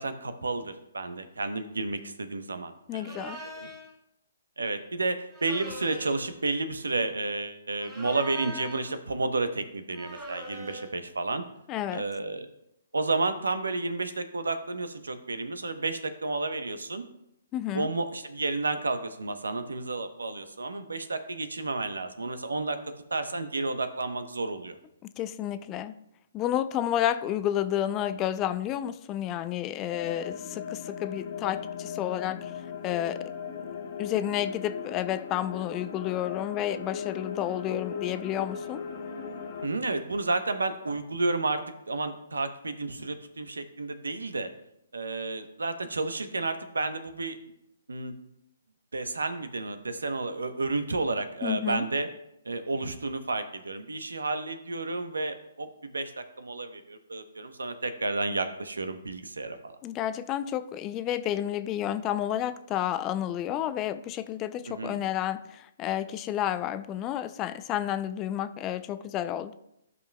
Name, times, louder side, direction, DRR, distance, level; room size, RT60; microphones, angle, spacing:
voice 1, 0.0-3.5 4.6-11.4 11.9-12.5 12.9-17.0 17.7-22.8 23.1-24.8 39.6-44.5 44.9-47.4 47.9-48.1 48.9-52.1 52.4-59.8 64.7-65.0, right 3 dB, 85° right, 9 dB, 0.9 m, -31 dB
voice 2, 2.9-3.4 11.7-12.0 17.5-17.9 25.2-26.0 26.3-32.5 32.8-33.3 34.0-38.8 51.4-51.9 59.8-69.5, left 11 dB, 25° left, 13 dB, 0.4 m, -31 dB
sound 1, 3.0-3.9 5.3-6.4 7.7-8.9 9.9-11.0, right 1 dB, 20° right, 2.8 m, -41 dB
sound 2, 29.9-39.7, left 7 dB, 50° left, 1.1 m, -38 dB
13.0 x 5.4 x 2.2 m, 0.80 s
hypercardioid pair, 140°, 0 cm